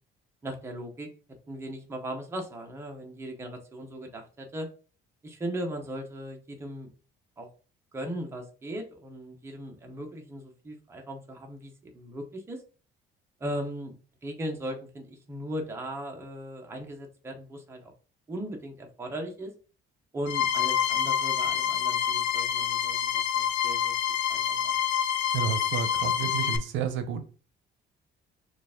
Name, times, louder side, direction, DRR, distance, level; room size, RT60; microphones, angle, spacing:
voice 1, 0.4-1.1 1.5-4.7 5.2-6.9 7.4-7.5 7.9-12.6 13.4-13.9 14.2-17.9 18.3-19.5 20.1-23.9 24.3-24.7, right 1 dB, 15° right, 0.7 m, -38 dB
sound 1, 20.3-26.6, left 9 dB, 65° left, 0.5 m, -27 dB
voice 2, 25.3-27.2, right 7 dB, 75° right, 0.6 m, -31 dB
4.5 x 2.4 x 3.6 m
cardioid pair, 175°, 20 cm